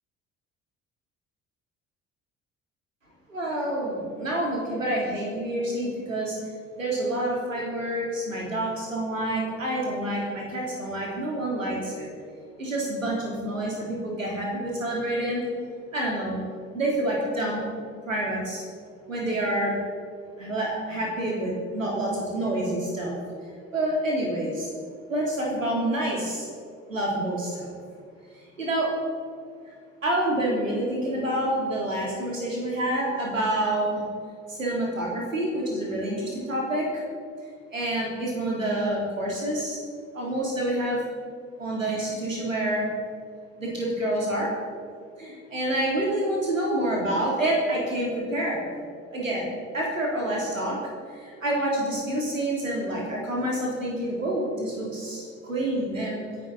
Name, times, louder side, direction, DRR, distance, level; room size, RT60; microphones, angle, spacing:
voice 1, 3.3-6.4 6.8-12.1 12.6-15.4 15.9-16.4 16.7-17.6 18.0-18.6 19.1-19.7 20.4-23.1 23.7-24.7 25.1-26.5 26.9-27.7 28.6-28.9 30.0-34.0 34.5-36.9 37.7-39.8 40.1-41.0 41.6-42.9 43.6-44.5 45.2-48.7 49.1-49.5 49.7-50.8 51.1-56.2, right 1 dB, 90° right, -3 dB, 3.3 m, -27 dB
26.0 x 11.0 x 4.1 m, 2.2 s
figure-of-eight pair, 55°, 38 cm